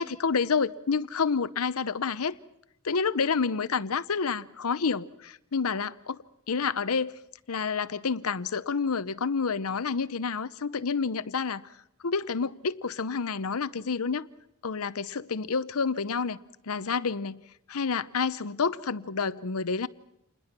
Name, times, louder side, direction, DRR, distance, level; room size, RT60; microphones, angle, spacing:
voice 1, 0.0-2.4 2.8-6.2 6.5-7.1 7.5-11.6 12.0-14.3 14.6-16.4 16.7-17.4 17.7-19.9, left 5 dB, 75° left, 0.7 m, -29 dB
28.0 x 20.5 x 6.0 m
head